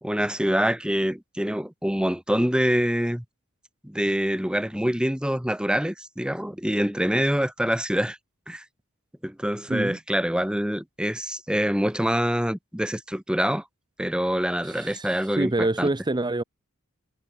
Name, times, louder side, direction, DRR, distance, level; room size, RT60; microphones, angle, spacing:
voice 1, 0.0-3.2 3.8-8.2 8.5-8.6 9.2-13.6 14.0-15.9, equal, 5° right, 1.5 m, -25 dB
voice 2, 9.7-10.0 14.6-16.4, right 2 dB, 20° right, 0.8 m, -26 dB
head